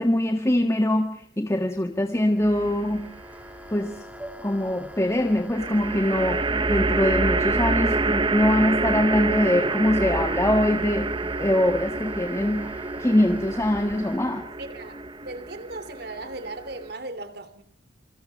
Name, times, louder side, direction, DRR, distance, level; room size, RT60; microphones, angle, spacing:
voice 1, 0.0-3.1 3.7-4.0 4.4-14.5, left 1 dB, 15° left, 1.6 m, -23 dB
sound 1, 2.0-14.2, equal, 10° right, 2.6 m, -43 dB
sound 2, 2.4-3.1 5.5-16.9, right 3 dB, 25° right, 0.9 m, -27 dB
voice 2, 14.6-17.6, right 2 dB, 60° right, 3.0 m, -37 dB
27.0 x 26.0 x 5.6 m
head